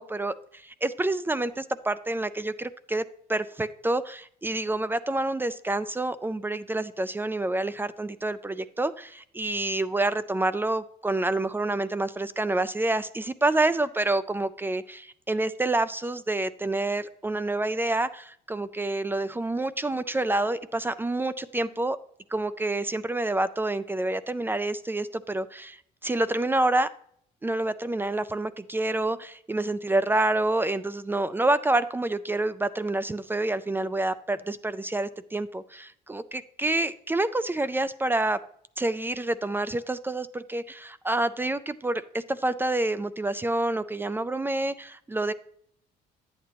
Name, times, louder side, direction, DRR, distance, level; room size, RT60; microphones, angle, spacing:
voice 1, 0.0-3.0 3.3-22.0 22.3-26.9 27.4-38.4 38.8-45.3, right 2 dB, 10° right, 14 dB, 0.3 m, -28 dB
10.5 x 8.5 x 2.9 m, 0.65 s
cardioid pair, 110°, 17 cm